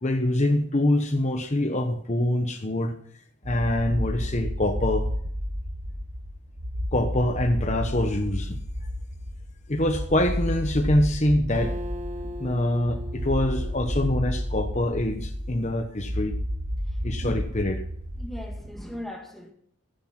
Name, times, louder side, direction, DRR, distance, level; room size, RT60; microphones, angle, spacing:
voice 1, 0.0-3.0 3.4-5.1 6.9-8.6 9.7-11.7 12.4-16.3 17.0-17.8, left 1 dB, 30° left, 1.0 m, -25 dB
sound 1, 3.4-19.0, equal, 65° right, 3.9 m, -31 dB
Acoustic guitar, 11.5-15.1, left 1 dB, 30° right, 1.0 m, -40 dB
voice 2, 18.2-19.5, left 1 dB, ahead, 1.8 m, -38 dB
15.0 x 10.5 x 5.9 m
head